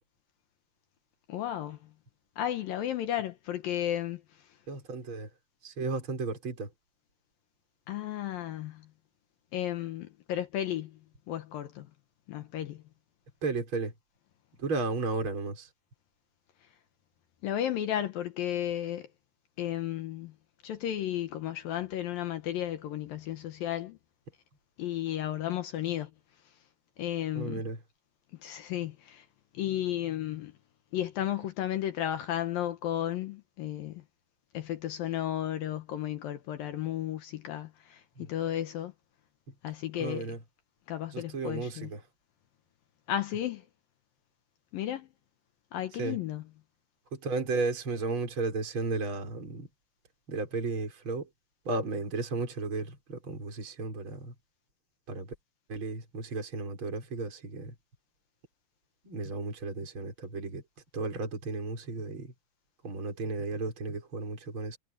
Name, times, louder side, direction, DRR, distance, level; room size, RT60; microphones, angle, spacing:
voice 1, 1.3-1.8 2.4-4.2 7.9-8.9 9.5-11.0 11.3-11.9 12.3-12.8 17.4-19.1 19.6-20.3 20.6-24.0 24.8-26.1 27.0-27.6 28.4-29.3 29.5-30.5 30.9-34.0 34.5-38.9 39.6-40.3 40.9-41.9 43.1-43.6 44.7-45.1 45.7-46.4, left 11 dB, 75° left, 2.1 m, -33 dB
voice 2, 4.7-5.3 5.6-6.7 13.4-13.9 14.6-15.7 27.3-27.8 38.2-38.3 40.0-40.4 41.1-42.0 46.0-46.2 47.1-49.7 50.3-51.3 51.6-54.3 55.1-55.3 55.7-57.7 59.0-60.6 60.9-62.3 62.8-64.8, right 3 dB, 25° right, 6.1 m, -34 dB
omnidirectional pair, 5.5 m